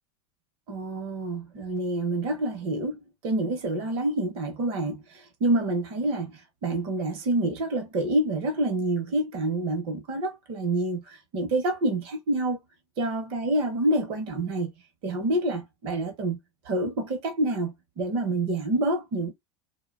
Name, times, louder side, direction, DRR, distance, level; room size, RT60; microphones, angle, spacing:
voice 1, 0.7-12.6 13.0-14.7 15.0-16.4 16.6-19.3, right 2 dB, 40° right, 0.8 m, -27 dB
2.7 x 2.2 x 2.4 m
supercardioid pair, 160°, 14 cm